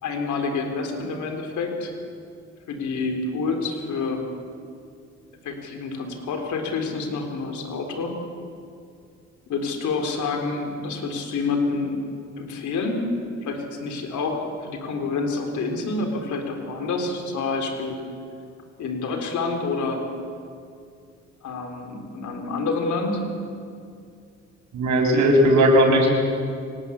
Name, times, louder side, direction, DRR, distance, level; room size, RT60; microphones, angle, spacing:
voice 1, 0.0-1.9 2.7-4.2 5.4-8.2 9.5-12.0 12.4-13.1 13.4-18.0 18.8-20.0 21.4-23.2, left 4 dB, 75° left, 3 dB, 4.1 m, -28 dB
voice 2, 24.7-26.1, equal, 70° right, 2 dB, 6.2 m, -17 dB
25.5 x 19.5 x 8.4 m, 2.3 s
cardioid pair, 90°, 30 cm